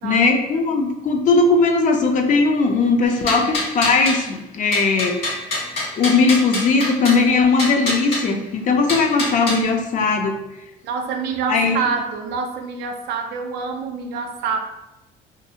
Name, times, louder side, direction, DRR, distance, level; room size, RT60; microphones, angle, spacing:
voice 1, 0.0-5.2 6.0-10.4 11.5-11.8, left 4 dB, 50° left, 3 dB, 0.4 m, -18 dB
sound 1, 3.1-4.2 4.7-7.2 7.6-8.2 8.9-9.6, left 2 dB, 65° left, 1.4 m, -25 dB
voice 2, 10.8-14.6, right 5 dB, 90° right, 4 dB, 0.4 m, -26 dB
2.5 x 2.3 x 2.7 m, 0.94 s
cardioid pair, 110°, 17 cm